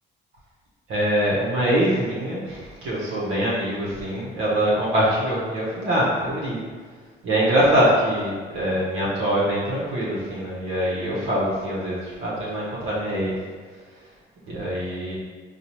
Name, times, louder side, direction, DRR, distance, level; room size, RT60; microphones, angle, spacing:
voice 1, 0.9-6.6 7.2-13.3 14.5-15.2, equal, 85° right, -7 dB, 0.9 m, -23 dB
4.1 x 2.3 x 3.0 m, 1.5 s
cardioid pair, 90°, 20 cm